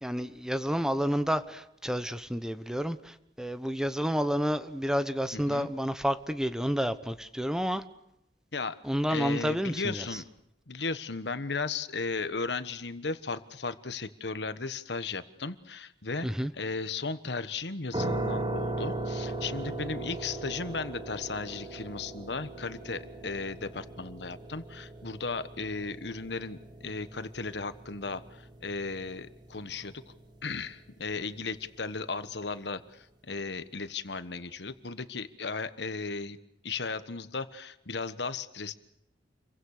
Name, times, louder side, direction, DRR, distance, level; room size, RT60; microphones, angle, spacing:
voice 1, 0.0-7.8 8.8-10.0 16.2-16.5, equal, 5° right, 11 dB, 1.0 m, -30 dB
voice 2, 5.3-5.7 8.5-8.8 9.1-10.2 10.7-16.3 16.5-30.0 30.4-36.4 36.6-38.8, left 4 dB, 75° left, 12 dB, 1.4 m, -36 dB
sound 1, 17.9-30.8, right 2 dB, 25° right, 2.5 m, -38 dB
29.0 x 23.5 x 6.7 m, 0.81 s
head